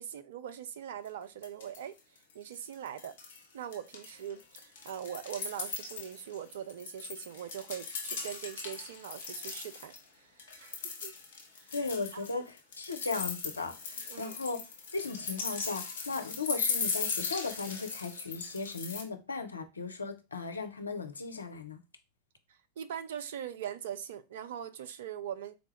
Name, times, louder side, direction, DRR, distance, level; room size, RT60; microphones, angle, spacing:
voice 1, 0.0-1.9 2.3-3.2 3.5-11.1 11.5-11.7 12.1-12.3 14.1-14.4 22.8-25.5, right 9 dB, 55° right, 0.3 m, -42 dB
sound 1, 1.0-1.1 1.4-2.0 2.3-3.4 3.7-10.0 10.4-19.0, left 5 dB, 55° left, 0.9 m, -38 dB
voice 2, 11.7-14.6 14.9-21.8, left 4 dB, 75° left, 0.5 m, -37 dB
3.9 x 2.3 x 3.2 m
figure-of-eight pair, 90°, 0 cm